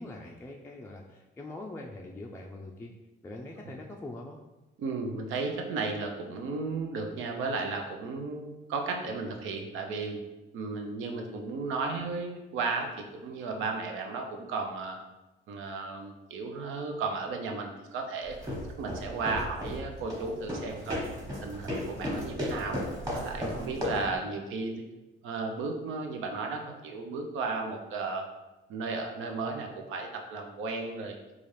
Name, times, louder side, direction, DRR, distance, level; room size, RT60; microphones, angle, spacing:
voice 1, 0.0-2.9 3.2-4.4 23.4-24.2, left 2 dB, 15° left, -1 dB, 0.3 m, -43 dB
voice 2, 4.8-10.2 10.5-15.0 15.5-18.4 18.8-21.0 21.4-22.8 23.1-24.7 25.2-28.2 28.7-31.2, right 4 dB, 85° right, 2 dB, 0.6 m, -34 dB
sound 1, 18.2-24.1, left 1 dB, 20° right, 1.2 m, -35 dB
4.0 x 2.4 x 3.2 m, 1.1 s
cardioid pair, 90°, 20 cm